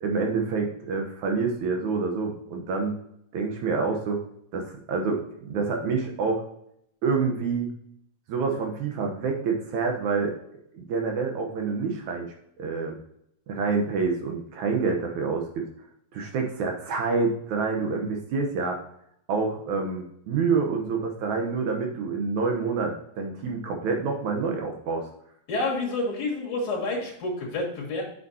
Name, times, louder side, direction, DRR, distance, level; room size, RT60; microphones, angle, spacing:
voice 1, 0.0-3.0 3.3-4.2 4.5-6.4 7.0-7.7 8.3-10.4 10.7-13.0 13.5-15.6 16.1-18.8 19.3-25.1, right 4 dB, 70° right, 2 dB, 2.2 m, -27 dB
voice 2, 25.5-28.0, left 2 dB, 65° left, -2 dB, 3.5 m, -29 dB
8.2 x 6.7 x 2.8 m, 0.73 s
omnidirectional pair, 3.8 m